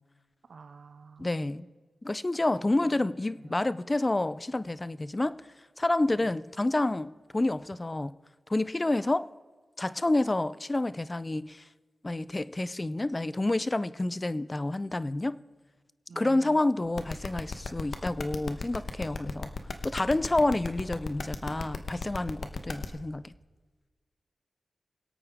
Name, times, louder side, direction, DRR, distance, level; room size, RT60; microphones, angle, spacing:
voice 1, 0.5-1.6 2.8-3.1 3.5-3.7 16.1-16.6, right 5 dB, 70° right, 9 dB, 0.4 m, -49 dB
voice 2, 1.2-1.7 2.0-5.4 5.8-8.1 8.5-9.3 9.8-11.6 12.0-15.4 16.2-19.5 19.8-23.3, left 2 dB, 25° left, 17 dB, 0.5 m, -29 dB
sound 1, 17.0-22.8, left 4 dB, 65° left, 1.1 m, -35 dB
24.0 x 8.6 x 3.6 m, 1.4 s
cardioid pair, 65°, 0 cm